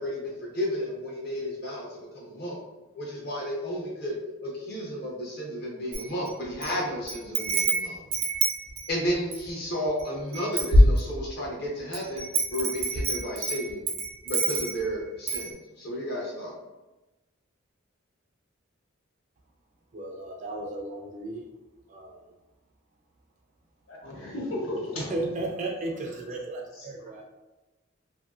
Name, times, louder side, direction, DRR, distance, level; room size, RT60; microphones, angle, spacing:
voice 1, 0.0-2.6 2.9-4.2 4.4-8.0 8.9-12.2 12.5-13.8 14.2-16.5, equal, 50° left, -3 dB, 0.7 m, -32 dB
Wind chime, 5.9-6.7 7.1-9.5 10.0-10.1 10.3-11.4 11.9-14.9 15.3-15.5, right 1 dB, 85° right, 0.6 m, -24 dB
voice 2, 19.9-21.5 21.9-22.2 25.1-27.2, right 2 dB, 35° right, 1 dB, 0.3 m, -34 dB
voice 3, 23.9-25.3 26.7-26.9, left 1 dB, 80° left, -4 dB, 0.8 m, -35 dB
2.7 x 2.6 x 2.3 m, 1.1 s
head